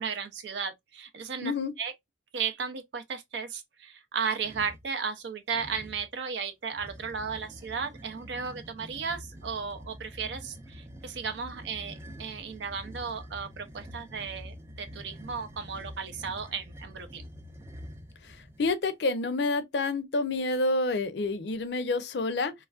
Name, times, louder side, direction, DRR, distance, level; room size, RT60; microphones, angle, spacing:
voice 1, 0.0-1.5 1.8-1.9 2.3-17.3, right 6 dB, 75° right, 0.4 m, -35 dB
voice 2, 1.4-1.7 18.6-22.5, left 3 dB, 70° left, 0.5 m, -28 dB
sound 1, 4.4-4.9 5.5-6.1 6.7-18.7, equal, 15° right, 0.4 m, -46 dB
3.0 x 2.4 x 2.3 m
head